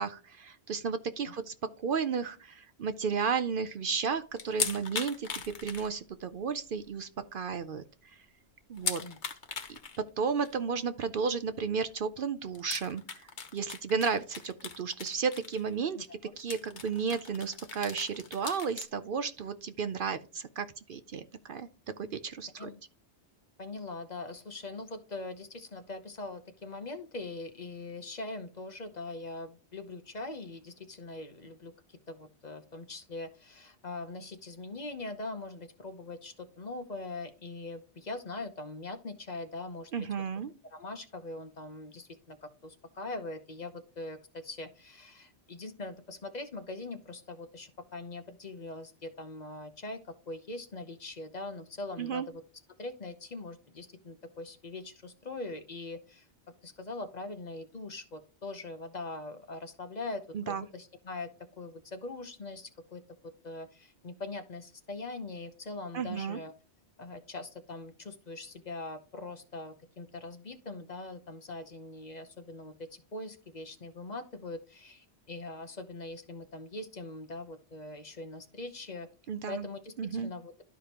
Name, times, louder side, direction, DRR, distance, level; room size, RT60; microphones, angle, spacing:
voice 1, 0.0-7.8 8.7-9.0 9.7-9.8 10.2-13.3 13.5-16.1 16.4-21.7 22.0-22.7 39.9-40.5 52.0-52.3 60.3-60.6 65.9-66.4 79.3-79.6 80.0-80.3, right 6 dB, 60° right, 11 dB, 0.7 m, -33 dB
sound 1, 4.4-6.3 6.7-6.8 7.2-7.3 7.6-7.7 8.8-10.0 10.5-10.6 11.9-12.0 12.6-15.7 16.0-16.1 16.4-18.9, left 6 dB, 85° left, 1.4 m, -38 dB
voice 2, 23.6-39.9 40.7-52.4 52.8-56.3 56.6-61.3 61.6-63.0 63.4-66.5 67.0-79.1 79.5-80.5, left 2 dB, 40° left, 8 dB, 0.9 m, -42 dB
12.5 x 4.9 x 2.9 m, 0.36 s
omnidirectional pair, 1.1 m